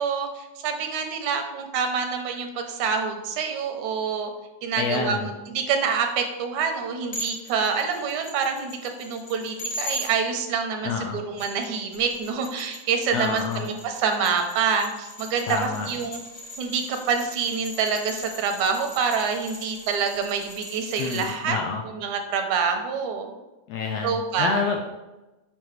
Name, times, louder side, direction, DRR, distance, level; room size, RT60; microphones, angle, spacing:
voice 1, 0.0-4.3 4.6-16.2 16.6-21.6 21.9-23.3 24.0-24.6, right 6 dB, 80° right, 4 dB, 2.2 m, -26 dB
voice 2, 4.8-5.3 10.8-11.2 13.1-13.7 15.5-15.9 21.0-21.8 23.7-25.0, left 5 dB, 85° left, 2 dB, 1.5 m, -28 dB
sound 1, 7.1-10.1 11.2-21.4, left 1 dB, 60° left, 0.8 m, -40 dB
7.7 x 5.1 x 3.2 m, 1.1 s
omnidirectional pair, 3.4 m